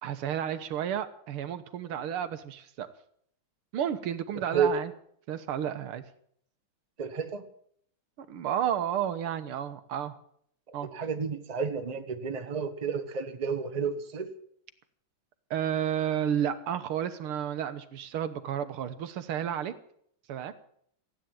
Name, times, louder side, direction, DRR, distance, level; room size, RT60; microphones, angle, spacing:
voice 1, 0.0-2.9 3.7-4.9 5.3-6.0 8.2-10.2 10.7-10.9 15.5-19.7 20.3-20.5, right 9 dB, 85° right, 10 dB, 2.0 m, -31 dB
voice 2, 7.0-7.5 10.9-14.3, right 6 dB, 25° right, 7 dB, 1.0 m, -31 dB
15.5 x 9.2 x 8.9 m, 0.67 s
omnidirectional pair, 2.4 m